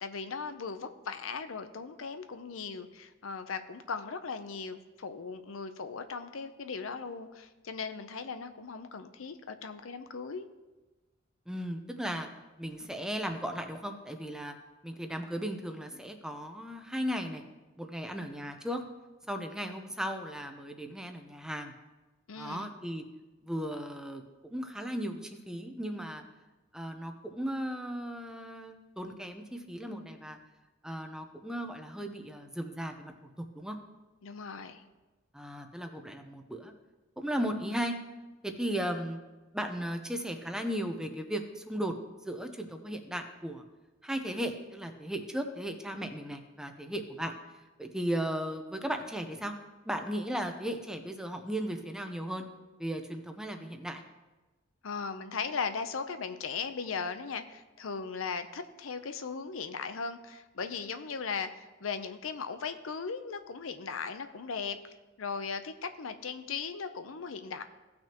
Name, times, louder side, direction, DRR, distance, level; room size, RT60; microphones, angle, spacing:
voice 1, 0.0-10.5 22.3-22.7 34.2-34.8 54.8-67.6, left 5 dB, 85° left, 9 dB, 0.6 m, -38 dB
voice 2, 11.5-12.3 12.6-14.5 14.8-17.4 17.8-18.8 19.3-21.7 22.4-23.0 23.4-26.2 26.7-30.4 30.8-33.3 33.5-33.8 35.3-36.7 37.2-38.0 38.4-39.2 39.5-41.9 42.2-43.6 44.0-47.3 47.8-49.5 49.8-52.4 52.8-54.0, equal, 5° right, 5 dB, 0.7 m, -36 dB
16.5 x 6.1 x 2.9 m, 1.2 s
head